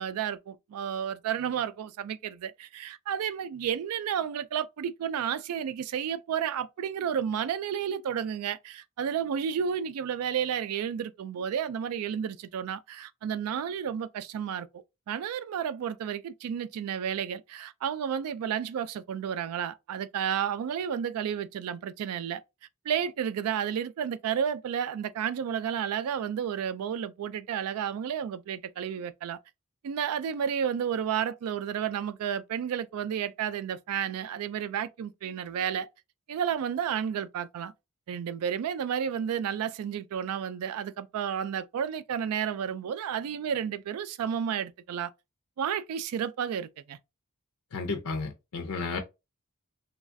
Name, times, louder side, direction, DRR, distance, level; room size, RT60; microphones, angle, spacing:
voice 1, 0.0-22.4 22.9-29.4 29.8-35.9 36.3-37.7 38.1-45.1 45.6-47.0, right 8 dB, 75° right, 0.3 m, -31 dB
voice 2, 47.7-49.0, left 4 dB, 80° left, 0.6 m, -32 dB
3.1 x 2.3 x 2.5 m
head